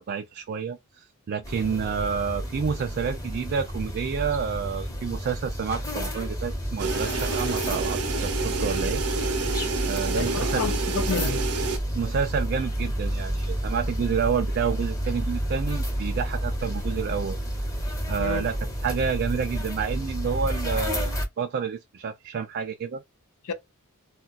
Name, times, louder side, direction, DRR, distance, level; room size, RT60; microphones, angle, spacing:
voice 1, 0.0-9.0 9.8-10.7 11.9-17.4 18.1-18.6 18.8-23.0, right 6 dB, 45° right, 0.3 m, -29 dB
sound 1, 1.4-21.2, equal, 15° left, 0.8 m, -30 dB
sound 2, 6.8-11.8, right 4 dB, 85° right, 0.8 m, -29 dB
voice 2, 10.1-11.4 18.2-18.5 23.4-23.5, left 5 dB, 80° left, 0.6 m, -30 dB
2.3 x 2.3 x 3.9 m
head